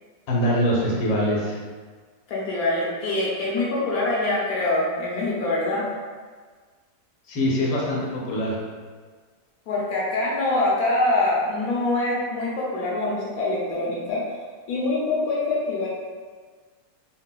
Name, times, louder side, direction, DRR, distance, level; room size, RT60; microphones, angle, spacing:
voice 1, 0.3-1.6 7.3-8.6, equal, 85° left, -4 dB, 1.3 m, -23 dB
voice 2, 2.3-5.8 9.7-14.2 14.7-15.9, left 2 dB, 70° left, -4 dB, 1.0 m, -24 dB
3.8 x 2.1 x 2.2 m, 1.5 s
omnidirectional pair, 1.8 m